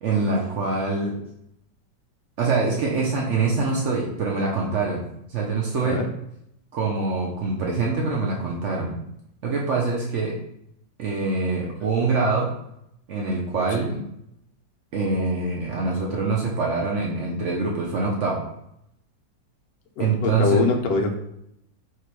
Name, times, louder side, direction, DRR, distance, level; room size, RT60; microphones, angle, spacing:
voice 1, 0.0-1.2 2.4-5.0 5.3-6.0 6.7-9.0 9.4-10.3 11.0-12.5 13.1-14.0 14.9-18.4 20.0-20.6, right 3 dB, 80° right, -2 dB, 0.6 m, -24 dB
voice 2, 20.0-21.2, left 4 dB, 70° left, 2 dB, 0.9 m, -23 dB
3.1 x 2.9 x 4.5 m, 0.77 s
omnidirectional pair, 2.1 m